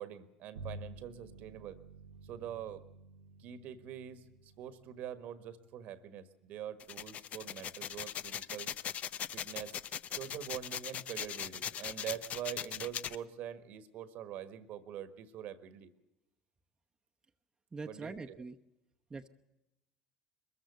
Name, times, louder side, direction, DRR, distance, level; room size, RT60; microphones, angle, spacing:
voice 1, 0.0-1.8 2.2-2.8 3.4-8.7 9.3-9.8 10.1-15.9 17.8-18.4, right 10 dB, 60° right, 13 dB, 1.5 m, -44 dB
Bowed string instrument, 0.5-6.2, right 2 dB, 85° right, 0.9 m, -52 dB
sound 1, 6.8-13.2, left 9 dB, 50° left, 0.6 m, -40 dB
voice 2, 17.7-18.6 19.1-19.3, right 4 dB, 20° right, 3 dB, 1.0 m, -43 dB
22.0 x 14.0 x 8.2 m, 0.92 s
hypercardioid pair, 70°, 3 cm